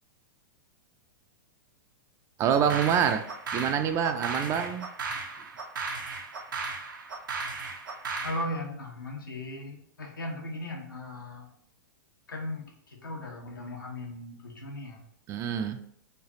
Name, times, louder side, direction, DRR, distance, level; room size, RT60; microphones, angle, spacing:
voice 1, 2.4-3.2 3.5-4.9 15.3-15.8, right 8 dB, 30° right, 8 dB, 0.3 m, -26 dB
sound 1, 2.5-8.4, right 4 dB, 85° right, 0.7 m, -36 dB
voice 2, 8.2-11.5 12.3-15.0, left 1 dB, 90° left, 0 dB, 1.0 m, -37 dB
3.2 x 2.4 x 3.8 m, 0.66 s
hypercardioid pair, 115°, 11 cm